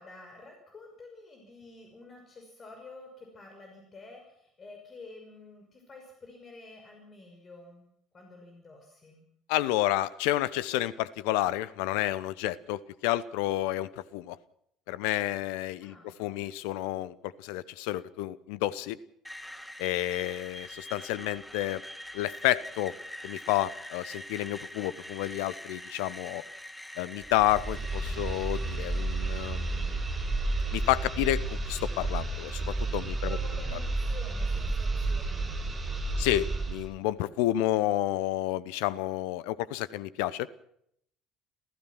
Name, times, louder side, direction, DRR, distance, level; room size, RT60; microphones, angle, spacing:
voice 1, 0.0-7.9 8.1-9.3 15.8-16.1 33.2-35.7, left 3 dB, 35° left, 3 dB, 5.8 m, -49 dB
voice 2, 9.5-14.4 14.9-19.0 19.8-21.8 22.1-22.9 23.2-26.4 27.0-30.0 30.7-33.4 36.2-40.5, left 15 dB, 65° left, 18 dB, 0.9 m, -30 dB
Screech, 19.2-33.2, left 1 dB, 5° left, 2.6 m, -45 dB
sound 1, 27.2-36.9, right 3 dB, 30° right, 6.7 m, -31 dB
29.0 x 15.5 x 6.0 m, 0.71 s
figure-of-eight pair, 60°, 0 cm